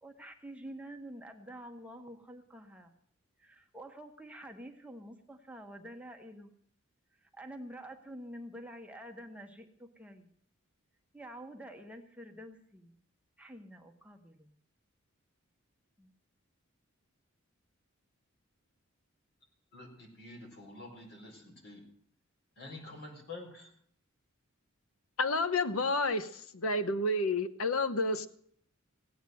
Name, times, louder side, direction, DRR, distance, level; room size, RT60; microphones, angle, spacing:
voice 1, 0.0-2.9 3.4-6.5 7.1-10.3 11.1-13.0 13.4-14.5 16.0-16.1, right 1 dB, 5° right, 4 dB, 1.1 m, -48 dB
voice 2, 19.7-21.8 22.6-23.7, left 2 dB, 50° left, 2 dB, 4.6 m, -48 dB
voice 3, 25.2-28.3, left 2 dB, 85° left, 11 dB, 1.0 m, -30 dB
16.5 x 9.1 x 7.7 m, 0.65 s
head